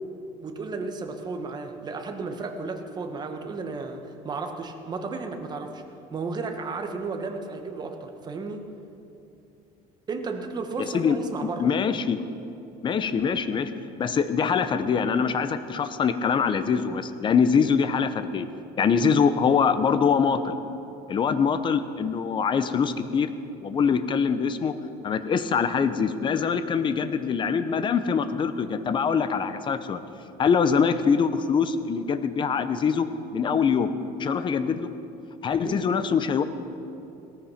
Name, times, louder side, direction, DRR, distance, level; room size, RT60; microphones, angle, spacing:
voice 1, 0.4-5.8 6.1-8.6 10.1-11.7 35.5-35.8, right 4 dB, 25° right, 4 dB, 1.4 m, -33 dB
voice 2, 11.6-12.2 12.8-13.7 14.0-18.5 18.8-20.6 21.1-23.3 23.6-24.8 25.0-30.0 30.4-33.1 33.3-33.9 34.2-34.9 35.4-36.4, left 6 dB, 30° left, 11 dB, 0.8 m, -23 dB
17.5 x 14.0 x 5.8 m, 2.8 s
cardioid pair, 145°, 17 cm